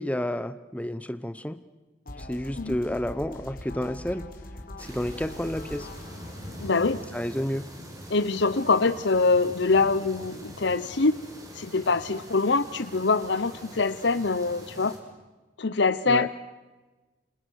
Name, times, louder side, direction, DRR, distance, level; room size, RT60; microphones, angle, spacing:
voice 1, 0.0-1.6 2.2-4.2 4.8-5.9 7.1-7.7 16.1-16.3, left 1 dB, 5° left, 12 dB, 0.8 m, -30 dB
sound 1, 2.1-8.0, left 1 dB, 45° left, 3.8 m, -43 dB
sound 2, 4.8-15.0, equal, 20° right, 4.6 m, -44 dB
voice 2, 6.6-7.0 8.1-11.2 11.5-14.9 15.6-16.3, left 3 dB, 65° left, 13 dB, 0.9 m, -24 dB
29.5 x 27.5 x 6.4 m, 1.2 s
head